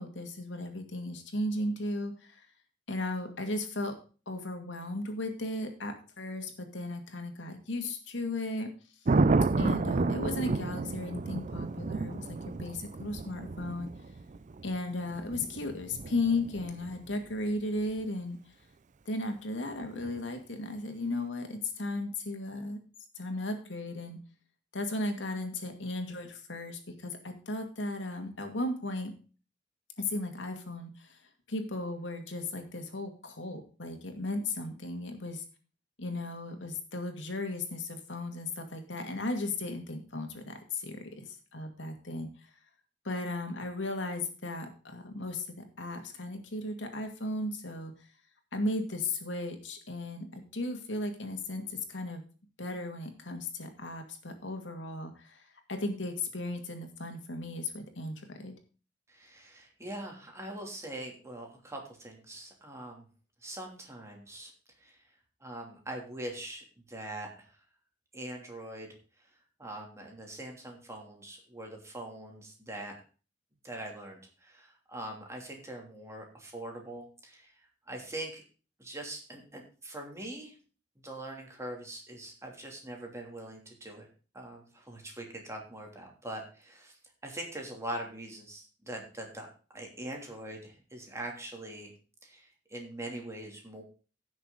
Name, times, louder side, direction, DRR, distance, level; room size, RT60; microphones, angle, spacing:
voice 1, 0.0-2.5 2.9-4.0 4.3-8.7 9.6-13.9 14.6-18.4 19.1-22.8 23.2-24.2 24.7-29.1 30.0-31.2 31.5-35.4 36.0-42.3 43.0-47.9 48.5-52.2 52.6-58.5, left 2 dB, 90° left, 4 dB, 2.3 m, -36 dB
Thunder, 9.1-17.1 19.8-20.2, right 3 dB, 45° right, 0.5 m, -31 dB
voice 2, 59.1-63.0 63.4-64.5 64.8-65.0 65.4-67.6 68.1-69.3 69.6-72.9 73.6-77.5 77.9-78.4 78.8-80.6 81.0-84.1 84.3-89.5 89.7-91.9 92.2-93.8, right 1 dB, 15° right, 1 dB, 2.9 m, -42 dB
16.0 x 6.5 x 3.9 m, 0.36 s
head